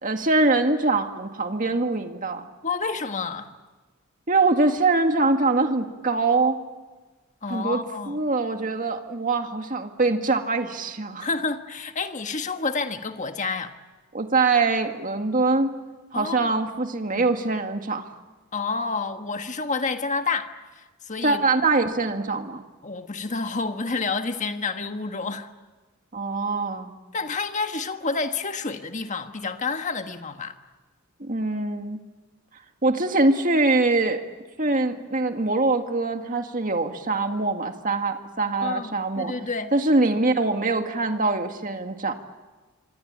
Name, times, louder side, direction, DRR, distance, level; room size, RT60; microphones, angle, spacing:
voice 1, 0.0-2.5 4.3-6.6 7.5-11.3 14.1-15.7 16.1-18.1 21.2-22.6 26.1-26.9 31.2-32.0 32.8-34.2 34.6-39.3 39.7-42.1, right 3 dB, 40° right, 1.9 m, -23 dB
voice 2, 2.6-3.5 7.4-8.2 11.2-13.7 16.1-16.5 17.1-17.3 18.5-21.4 22.8-25.5 27.1-30.5 38.6-39.7, left 4 dB, 35° left, 1.5 m, -29 dB
26.0 x 24.5 x 8.8 m
head